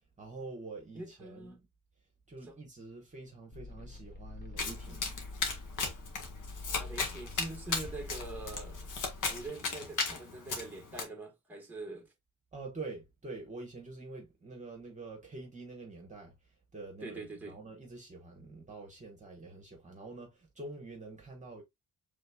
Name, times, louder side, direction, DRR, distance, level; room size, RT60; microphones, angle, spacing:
voice 1, 0.2-1.7 2.3-5.1 12.5-21.6, right 3 dB, 25° right, 1.3 m, -46 dB
voice 2, 0.9-1.6 2.4-2.6 6.7-8.9 9.3-12.1 17.0-17.6, right 2 dB, 5° right, 1.4 m, -44 dB
sound 1, 3.5-9.5, left 2 dB, 30° left, 1.1 m, -46 dB
Domestic sounds home sounds, 4.6-11.0, left 4 dB, 70° left, 1.5 m, -36 dB
5.1 x 3.5 x 2.3 m
cardioid pair, 115°, 32 cm